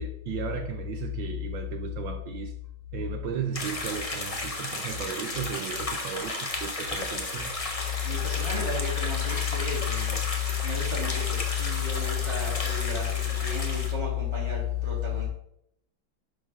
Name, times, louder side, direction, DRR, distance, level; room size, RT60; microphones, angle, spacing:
voice 1, 0.0-2.5 2.9-7.5 8.0-8.1, right 8 dB, 70° right, 6 dB, 1.4 m, -35 dB
sound 1, 3.5-13.9, left 2 dB, 25° left, 1.0 m, -34 dB
voice 2, 8.0-10.2 10.6-13.1 13.4-15.3, left 8 dB, 15° right, -5 dB, 3.1 m, -29 dB
10.5 x 6.1 x 3.7 m, 0.74 s
omnidirectional pair, 2.2 m